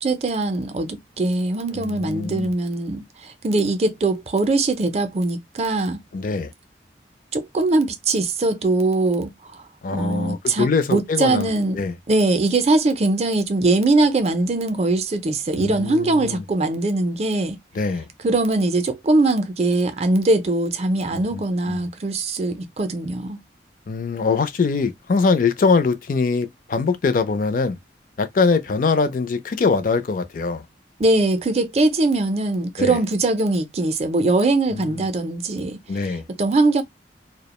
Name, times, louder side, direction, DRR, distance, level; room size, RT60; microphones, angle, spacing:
voice 1, 0.0-0.9 1.2-6.0 7.3-9.6 9.9-11.8 12.1-17.6 18.2-23.4 31.0-35.8 36.4-36.8, right 2 dB, 35° right, 0.4 m, -21 dB
voice 2, 1.7-2.5 6.1-6.5 9.8-11.5 11.7-11.9 15.6-16.4 17.7-18.1 21.1-21.9 23.9-27.8 28.2-30.6 32.8-33.0 34.7-35.0 35.9-36.3, left 4 dB, 50° left, 0.4 m, -23 dB
2.3 x 2.1 x 2.9 m
head